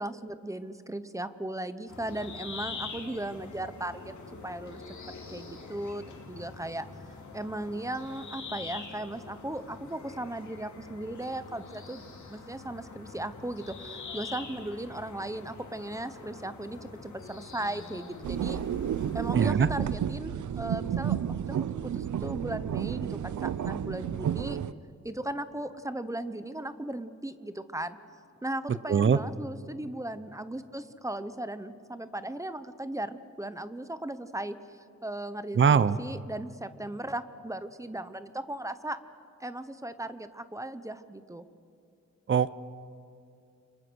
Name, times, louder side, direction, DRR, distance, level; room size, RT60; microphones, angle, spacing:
voice 1, 0.0-4.1 4.4-4.8 5.3-6.8 7.3-12.0 12.3-18.6 19.1-21.6 21.8-24.6 25.0-28.0 28.4-34.6 35.0-39.0 39.4-41.4, right 1 dB, 10° right, 12 dB, 0.8 m, -37 dB
sound 1, 1.9-19.5, left 4 dB, 80° left, 3.5 m, -44 dB
sound 2, 18.2-24.7, right 9 dB, 90° right, 0.7 m, -31 dB
voice 2, 19.3-19.7 28.9-29.2 35.6-36.0 42.3-42.6, right 6 dB, 40° right, 16 dB, 0.7 m, -22 dB
29.5 x 25.5 x 6.3 m, 2.4 s
wide cardioid pair, 175°, 29 cm